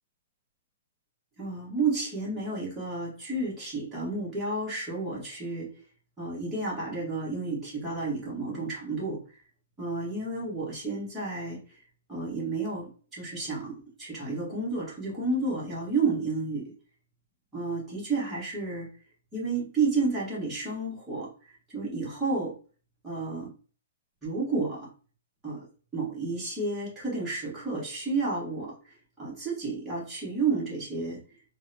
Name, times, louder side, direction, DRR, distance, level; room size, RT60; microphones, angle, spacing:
voice 1, 1.4-5.7 6.2-9.2 9.8-11.6 12.1-16.7 17.5-18.9 19.3-21.3 21.7-22.5 23.0-23.5 24.2-24.9 25.4-25.6 25.9-28.7 29.2-31.2, right 3 dB, 10° right, -6 dB, 1.4 m, -31 dB
3.7 x 2.1 x 2.7 m, 0.38 s
hypercardioid pair, 160°, 0 cm